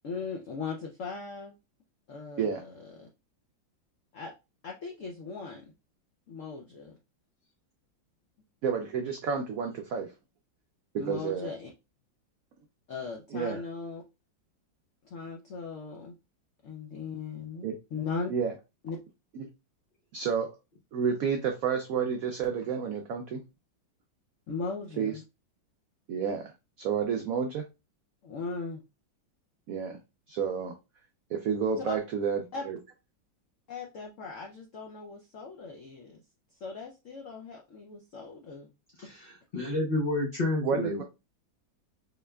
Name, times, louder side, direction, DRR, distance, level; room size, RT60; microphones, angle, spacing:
voice 1, 0.0-1.5 2.1-3.1 4.1-4.3 4.6-5.7 6.3-7.0 11.0-11.7 12.9-14.0 15.0-16.1 16.6-18.3 18.8-19.0 24.5-25.2 28.2-28.8 31.8-31.9 32.5-32.7 33.7-36.2 36.6-38.7, left 4 dB, 85° left, 1 dB, 0.6 m, -38 dB
voice 2, 8.6-10.1 11.0-11.5 13.3-13.6 17.6-17.7 18.3-18.5 19.4-19.5 20.1-20.5 20.9-23.4 25.0-25.1 26.1-27.6 29.7-30.0 30.3-30.7 31.3-32.8 40.6-41.0, right 6 dB, 80° right, 4 dB, 0.7 m, -30 dB
voice 3, 39.0-41.0, left 1 dB, 50° left, -2 dB, 0.6 m, -30 dB
4.3 x 3.2 x 2.3 m, 0.26 s
omnidirectional pair, 2.1 m